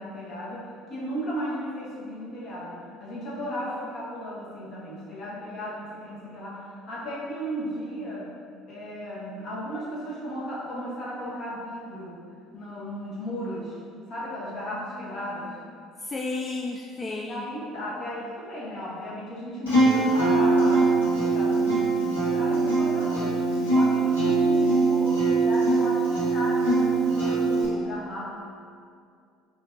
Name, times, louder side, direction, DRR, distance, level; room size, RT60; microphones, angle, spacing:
voice 1, 0.0-8.3 8.7-12.2 12.5-13.8 14.1-15.6 17.3-23.4 23.7-28.2, equal, 50° left, -7 dB, 1.3 m, -35 dB
voice 2, 14.9-15.5 15.8-17.5, left 3 dB, 25° left, -1 dB, 0.3 m, -34 dB
Acoustic guitar, 19.7-27.6, right 3 dB, 85° left, 1.2 m, -22 dB
5.2 x 2.7 x 2.6 m, 2.4 s
hypercardioid pair, 60°, 0 cm